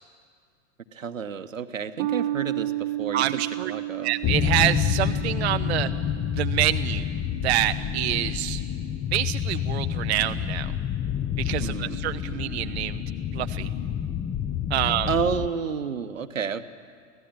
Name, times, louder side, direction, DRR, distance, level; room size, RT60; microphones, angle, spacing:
voice 1, 0.9-4.1 11.6-12.0 14.8-16.6, right 6 dB, 75° right, 9 dB, 1.3 m, -30 dB
sound 1, 2.0-8.7, right 14 dB, 35° right, 0.9 m, -33 dB
voice 2, 3.1-3.7 4.0-5.9 6.3-7.1 7.4-8.6 9.1-10.7 11.4-13.0 13.3-13.7 14.7-15.1, right 14 dB, 55° right, 10 dB, 0.6 m, -26 dB
sound 2, 4.2-15.5, left 9 dB, 15° left, 0.6 m, -28 dB
24.5 x 16.5 x 8.9 m, 2.1 s
figure-of-eight pair, 100°, 39 cm